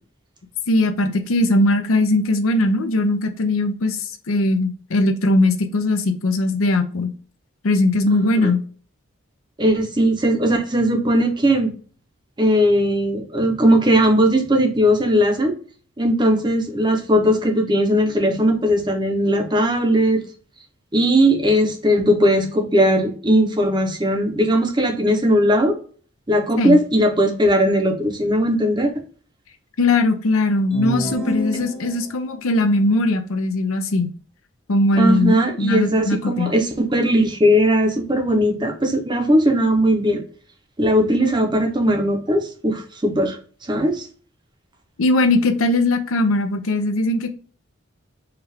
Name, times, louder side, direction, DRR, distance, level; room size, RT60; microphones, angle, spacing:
voice 1, 0.7-7.1 7.6-8.6 26.6-26.8 29.8-34.1 34.7-36.5 45.0-47.3, left 2 dB, 85° left, 7 dB, 0.6 m, -19 dB
voice 2, 9.6-11.7 12.4-15.5 16.0-20.2 20.9-25.8 26.3-29.0 35.0-40.2 40.8-43.4 43.7-44.1, equal, 20° right, 4 dB, 0.7 m, -18 dB
sound 1, 30.7-32.3, equal, 5° left, 0.9 m, -28 dB
4.6 x 2.4 x 3.2 m, 0.41 s
head